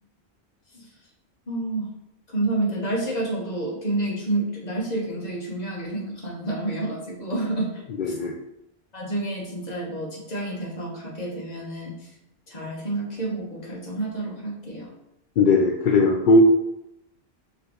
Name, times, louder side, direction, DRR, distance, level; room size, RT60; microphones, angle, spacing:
voice 1, 1.5-1.9 2.3-7.8 8.9-12.1 12.5-14.9, right 2 dB, 40° left, -3 dB, 1.2 m, -29 dB
voice 2, 8.0-8.3 15.4-16.4, left 3 dB, 60° left, -1 dB, 0.6 m, -18 dB
4.8 x 3.2 x 3.1 m, 0.84 s
omnidirectional pair, 1.1 m